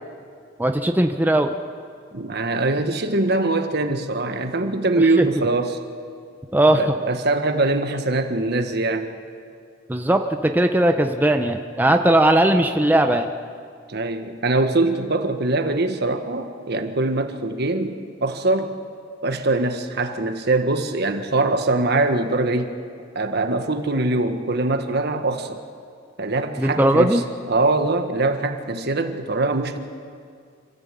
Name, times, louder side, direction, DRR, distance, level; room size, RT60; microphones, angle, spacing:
voice 1, 0.6-1.5 5.2-5.3 6.5-6.9 9.9-13.3 26.6-27.2, right 1 dB, 10° right, 5 dB, 0.7 m, -18 dB
voice 2, 2.1-5.8 6.7-9.1 13.9-18.7 19.2-22.7 23.1-25.6 26.2-27.2 27.5-29.8, right 2 dB, 60° right, 7 dB, 1.5 m, -22 dB
26.5 x 14.0 x 8.4 m, 2.2 s
head